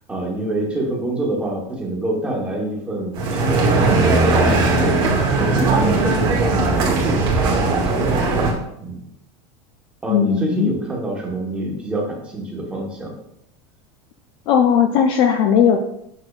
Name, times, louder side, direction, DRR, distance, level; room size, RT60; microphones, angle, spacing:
voice 1, 0.1-8.2 8.8-9.0 10.0-13.2, right 1 dB, 5° right, -3 dB, 1.1 m, -26 dB
sound 1, 3.1-8.5, right 3 dB, 30° right, 1.2 m, -18 dB
voice 2, 10.1-10.7 14.5-15.8, left 8 dB, 35° left, 5 dB, 0.4 m, -17 dB
6.5 x 6.0 x 2.4 m, 0.77 s
supercardioid pair, 175°, 15 cm